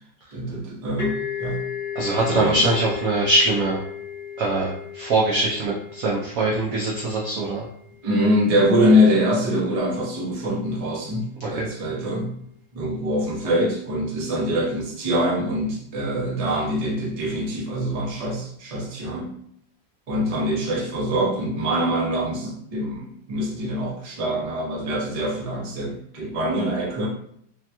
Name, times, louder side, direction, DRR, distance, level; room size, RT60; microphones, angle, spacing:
voice 1, 0.3-1.7 2.3-2.6 3.2-3.3 8.0-12.4 12.7-19.3 20.1-27.1, equal, 60° right, -5 dB, 0.3 m, -24 dB
sound 1, 1.0-8.5, left 7 dB, 25° left, 1.1 m, -35 dB
voice 2, 2.0-3.8 4.4-7.6 11.4-11.7, right 2 dB, 85° right, -3 dB, 0.7 m, -22 dB
3.3 x 2.8 x 2.2 m, 0.69 s
omnidirectional pair, 2.0 m